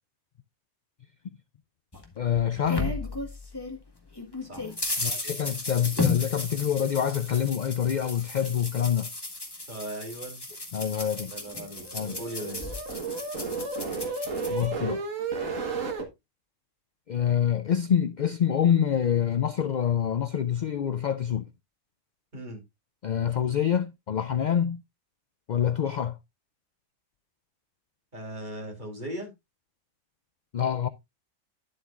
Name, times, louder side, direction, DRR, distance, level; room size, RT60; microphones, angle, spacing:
sound 1, 1.9-3.8 4.1-14.7, left 3 dB, 20° left, 1.7 m, -34 dB
voice 1, 2.2-3.0 5.0-9.1 10.7-11.3 11.9-12.2 14.5-15.1 17.1-21.5 23.0-24.8 25.5-26.2 30.5-30.9, left 9 dB, 70° left, 0.4 m, -26 dB
voice 2, 4.4-4.8 9.7-10.5 11.3-11.9 12.2-12.7 22.3-22.6 28.1-29.3, right 1 dB, 35° right, 3.2 m, -38 dB
sound 2, 11.4-16.1, right 4 dB, 75° right, 2.0 m, -33 dB
10.5 x 7.7 x 2.5 m
omnidirectional pair, 1.4 m